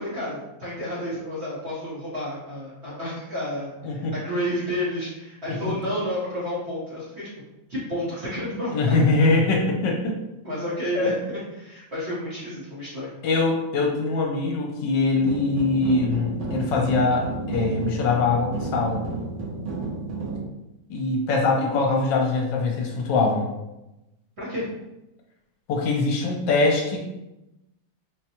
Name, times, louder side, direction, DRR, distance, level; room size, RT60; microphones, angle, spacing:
voice 1, 0.0-7.3 7.7-8.7 10.4-13.1 24.4-24.7, equal, 45° right, -9 dB, 1.0 m, -30 dB
voice 2, 8.7-10.2 11.0-11.1 13.2-19.0 20.9-23.5 25.7-27.0, left 3 dB, 75° left, 0 dB, 1.3 m, -22 dB
sound 1, 15.2-20.4, right 3 dB, 70° right, 1.3 m, -31 dB
4.0 x 2.2 x 2.8 m, 0.96 s
omnidirectional pair, 2.0 m